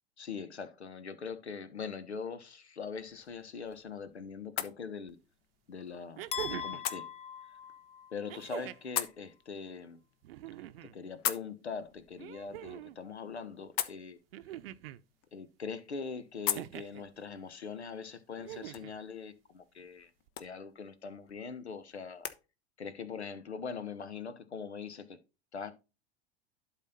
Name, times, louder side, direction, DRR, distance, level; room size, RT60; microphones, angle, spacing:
voice 1, 0.2-5.2 5.7-7.1 8.1-10.0 10.8-14.2 15.3-20.1 20.4-22.3 22.8-25.2 25.5-25.7, left 5 dB, 85° left, 1.1 m, -42 dB
sound 1, 2.9-22.4, left 11 dB, 40° left, 1.0 m, -43 dB
sound 2, 5.1-5.2 6.2-6.9 8.3-9.0 10.2-11.0 12.2-13.0 14.3-15.0 16.5-17.0 18.4-19.0 20.3-20.4, right 14 dB, 60° right, 0.7 m, -43 dB
Wine Glass Clink, 6.3-8.4, left 8 dB, 20° left, 0.6 m, -41 dB
11.5 x 4.2 x 4.1 m
figure-of-eight pair, 85°, 32 cm